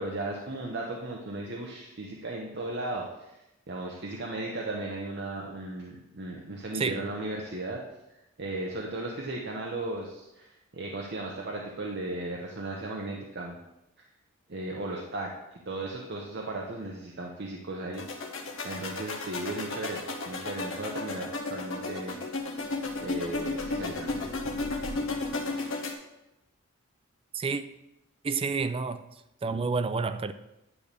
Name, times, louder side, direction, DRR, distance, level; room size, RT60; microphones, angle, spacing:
voice 1, 0.0-7.8 8.4-13.6 14.5-15.3 15.7-18.0 18.6-22.2 23.0-24.2, right 2 dB, 50° right, 0.9 m, -36 dB
voice 2, 6.7-7.1 27.3-27.6 28.2-29.0 29.4-30.3, right 4 dB, 25° right, 0.3 m, -29 dB
sound 1, 17.9-25.9, left 3 dB, 65° left, 1.0 m, -34 dB
9.8 x 3.4 x 6.7 m
head